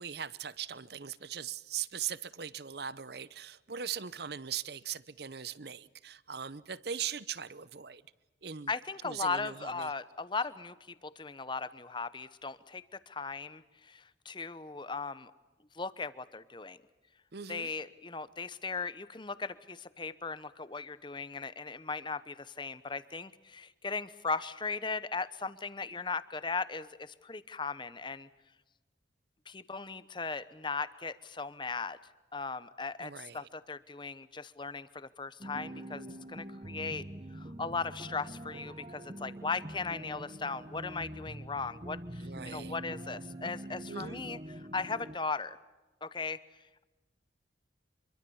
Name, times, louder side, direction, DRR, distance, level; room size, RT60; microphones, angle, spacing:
voice 1, 0.0-8.0 8.4-8.7 9.0-9.9 17.3-17.7 33.0-33.5 42.2-42.8 43.9-44.2, right 8 dB, 55° right, 0.8 m, -40 dB
voice 2, 8.7-15.3 15.7-16.8 17.5-28.3 29.5-32.0 32.3-37.1 37.3-45.6 46.0-46.4, left 4 dB, 25° left, 0.9 m, -38 dB
sound 1, 35.4-45.2, right 1 dB, 30° right, 1.2 m, -44 dB
26.0 x 23.5 x 7.2 m
head